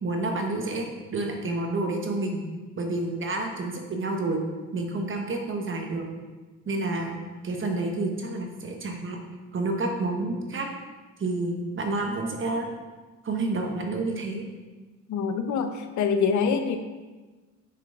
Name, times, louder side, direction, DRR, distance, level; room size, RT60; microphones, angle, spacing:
voice 1, 0.0-0.8 1.1-2.4 2.8-4.4 4.7-6.1 6.7-9.2 9.5-10.7 11.2-12.7 13.2-14.4, right 2 dB, 40° right, 2 dB, 1.2 m, -29 dB
voice 2, 15.1-16.8, left 6 dB, 70° left, 7 dB, 0.8 m, -25 dB
6.6 x 4.7 x 3.9 m, 1.3 s
cardioid pair, 90°, 30 cm